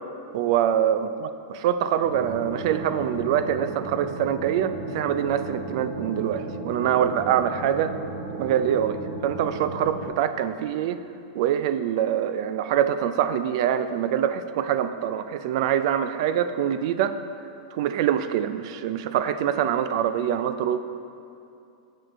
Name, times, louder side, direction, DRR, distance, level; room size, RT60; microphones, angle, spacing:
voice 1, 0.3-1.1 1.5-8.0 8.3-11.0 11.3-17.2 17.7-20.8, right 10 dB, 60° right, 11 dB, 0.4 m, -24 dB
sound 1, 2.0-10.1, right 2 dB, 80° right, 1.3 m, -35 dB
6.4 x 6.4 x 4.5 m, 2.6 s
supercardioid pair, 140°, 3 cm